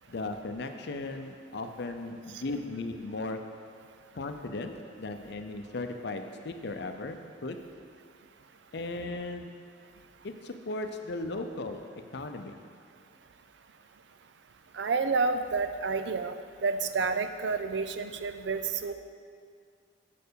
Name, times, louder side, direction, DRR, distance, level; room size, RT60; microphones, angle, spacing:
voice 1, 0.1-3.4 4.1-7.6 8.7-9.5 10.2-11.8 12.1-12.5, left 2 dB, 65° left, 6 dB, 0.6 m, -36 dB
voice 2, 14.7-16.4 16.6-18.9, right 4 dB, 70° right, 9 dB, 0.4 m, -29 dB
7.3 x 4.5 x 6.8 m, 2.2 s
head